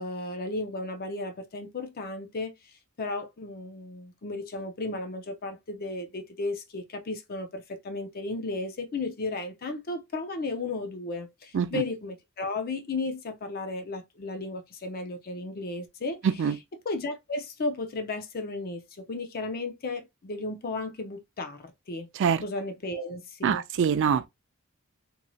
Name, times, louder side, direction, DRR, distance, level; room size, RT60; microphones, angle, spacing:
voice 1, 0.0-16.6 16.8-22.1 22.4-23.6, left 2 dB, 45° left, 0.5 m, -34 dB
voice 2, 23.4-24.3, right 7 dB, 55° right, 0.3 m, -24 dB
3.0 x 2.7 x 2.2 m
head